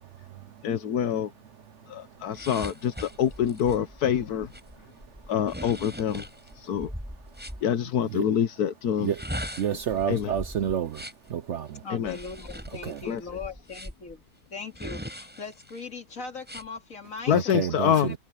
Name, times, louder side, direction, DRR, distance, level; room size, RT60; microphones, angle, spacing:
voice 1, 0.6-1.3 1.9-4.5 5.3-6.2 6.6-6.9 7.6-9.1 10.1-10.3 11.9-12.2 13.0-13.4 17.3-18.1, left 9 dB, 80° left, 1.5 m, -26 dB
sound 1, 2.3-7.6 9.0-11.3 12.0-14.1 14.7-15.8 16.4-16.7, equal, 5° right, 7.9 m, -40 dB
voice 2, 9.6-11.0 11.3-11.8 12.8-13.0 17.5-17.9, right 9 dB, 60° right, 0.8 m, -28 dB
voice 3, 11.8-14.2 14.5-17.6 18.0-18.1, left 5 dB, 60° left, 2.8 m, -39 dB
omnidirectional pair, 1.6 m